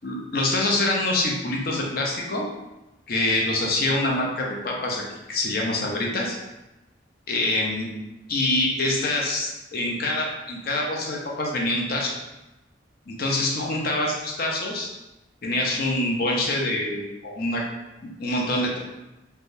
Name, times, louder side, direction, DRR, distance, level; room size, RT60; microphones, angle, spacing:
voice 1, 0.0-2.5 3.1-5.0 5.3-6.4 7.3-7.9 8.3-12.1 13.1-14.9 15.4-17.6 18.0-18.8, left 2 dB, 55° left, -1 dB, 0.6 m, -25 dB
3.4 x 2.2 x 2.6 m, 0.98 s
head